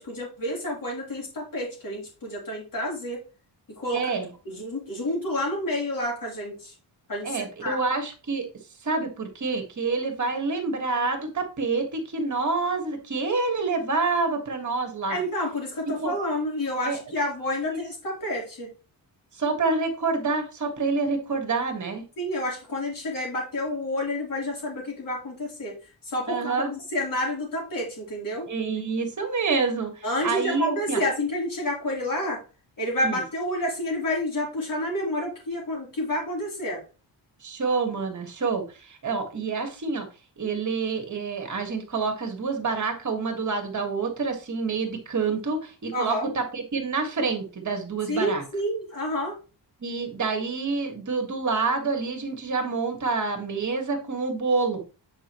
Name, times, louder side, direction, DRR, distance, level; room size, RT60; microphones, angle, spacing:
voice 1, 0.0-3.2 3.8-4.1 4.5-6.7 7.1-7.8 15.1-18.7 22.2-25.8 26.1-28.5 30.0-32.4 32.8-36.8 45.9-46.3 48.1-49.4, left 1 dB, 45° left, -2 dB, 3.6 m, -29 dB
voice 2, 3.9-4.3 7.2-8.5 8.8-15.2 16.0-16.1 16.8-17.0 17.6-17.8 19.4-22.0 26.3-26.7 28.5-31.0 33.0-33.2 37.4-40.1 40.4-48.4 49.8-54.8, right 4 dB, 40° right, 5 dB, 1.7 m, -27 dB
8.8 x 5.3 x 3.1 m, 0.32 s
wide cardioid pair, 165°, 44 cm